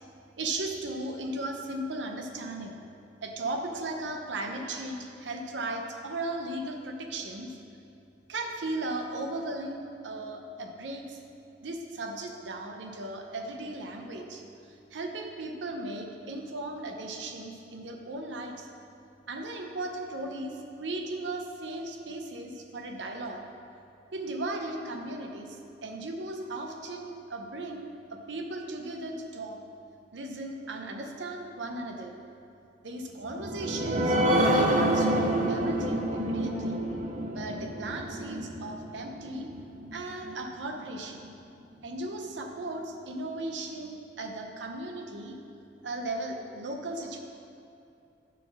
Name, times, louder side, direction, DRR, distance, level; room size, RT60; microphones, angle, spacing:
voice 1, 0.4-2.8 3.2-7.6 8.3-11.2 11.6-18.7 19.3-23.4 24.1-29.6 30.1-32.2 32.8-36.8 37.3-39.5 39.9-41.3 41.8-45.4 45.8-47.2, right 2 dB, 85° right, 3 dB, 0.7 m, -36 dB
sound 1, 33.3-40.3 40.8-40.9 41.2-41.3, right 1 dB, 40° right, 0.6 m, -28 dB
8.4 x 4.0 x 5.9 m, 2.7 s
head